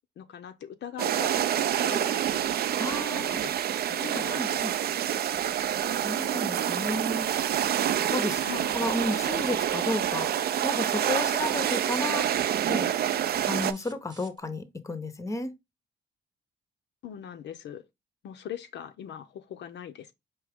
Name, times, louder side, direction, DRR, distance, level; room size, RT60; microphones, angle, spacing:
voice 1, 0.2-2.6 3.1-3.6 3.9-4.6 8.4-8.9 17.0-17.8 18.2-20.1, left 9 dB, 60° left, 0.5 m, -41 dB
sound 1, 1.0-13.7, right 10 dB, 50° right, 0.4 m, -27 dB
voice 2, 2.8-3.4 4.0-4.7 6.0-7.3 8.1-8.4 8.7-12.3 12.7-12.9 13.4-15.5, left 1 dB, 15° left, 0.7 m, -32 dB
sound 2, 13.4-14.4, right 3 dB, 20° right, 1.0 m, -51 dB
4.6 x 2.9 x 3.4 m
cardioid pair, 90°, 20 cm